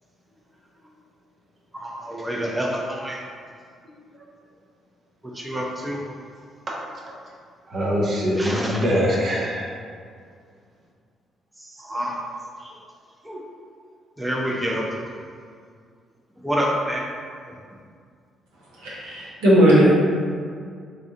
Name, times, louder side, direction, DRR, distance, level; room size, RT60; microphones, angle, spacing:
voice 1, 1.7-3.2 5.3-6.0 8.4-8.8 11.6-12.2 12.6-12.7 13.2-13.4 14.2-15.0 16.4-17.0, equal, 15° right, -2 dB, 0.6 m, -27 dB
voice 2, 7.7-9.8, equal, 55° right, -4 dB, 0.9 m, -23 dB
voice 3, 18.8-19.9, equal, 85° right, -8 dB, 0.9 m, -16 dB
3.3 x 2.5 x 3.7 m, 2.1 s
hypercardioid pair, 50°, 0 cm